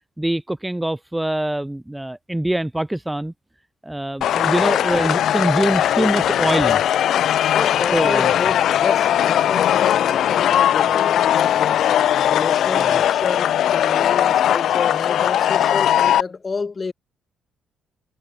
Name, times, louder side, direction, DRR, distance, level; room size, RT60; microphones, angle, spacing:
voice 1, 0.2-3.3 3.8-6.8 7.9-8.3 12.7-13.0, right 1 dB, 10° right, 0.8 m, -24 dB
sound 1, 4.2-16.2, left 11 dB, 70° left, 0.6 m, -19 dB
voice 2, 7.5-11.9 12.3-16.9, left 4 dB, 30° left, 1.7 m, -30 dB
cardioid pair, 90°, 0 cm